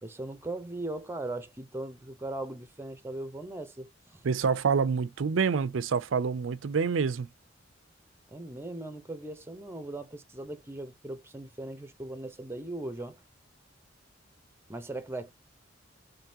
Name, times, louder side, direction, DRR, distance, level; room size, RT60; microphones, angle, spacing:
voice 1, 0.0-4.2 8.3-13.2 14.7-15.3, right 2 dB, 15° right, 0.6 m, -39 dB
voice 2, 4.2-7.3, right 5 dB, 90° right, 0.5 m, -27 dB
3.6 x 3.3 x 2.7 m
head